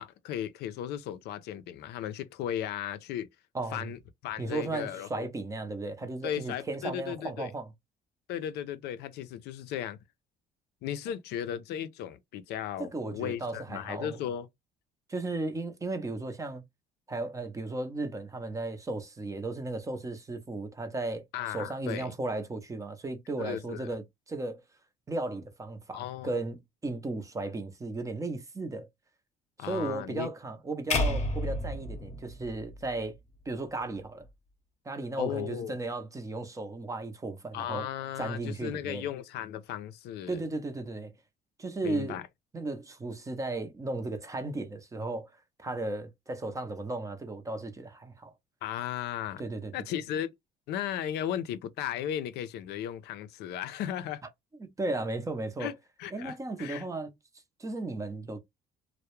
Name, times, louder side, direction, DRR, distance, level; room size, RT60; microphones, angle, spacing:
voice 1, 0.0-3.3 3.7-5.3 6.2-7.5 8.3-10.0 10.8-14.5 21.3-22.1 23.4-23.9 25.9-26.4 29.6-30.3 35.2-35.8 37.5-40.4 41.8-42.2 48.6-49.4 49.7-50.3 50.7-54.2 55.6-55.7 56.0-56.9, left 10 dB, 75° left, 0.4 m, -36 dB
voice 2, 3.5-3.9 4.4-7.7 12.8-14.2 15.1-16.7 17.1-24.6 25.1-28.9 29.6-33.2 33.5-34.3 34.9-37.9 38.2-39.0 40.3-41.1 41.6-42.2 42.5-45.3 45.6-48.3 49.4-49.7 54.6-55.7 56.1-57.1 57.6-58.4, right 2 dB, 20° right, 0.5 m, -35 dB
sound 1, 30.9-33.2, left 2 dB, 45° left, 0.7 m, -31 dB
2.2 x 2.0 x 2.9 m
cardioid pair, 110°, 17 cm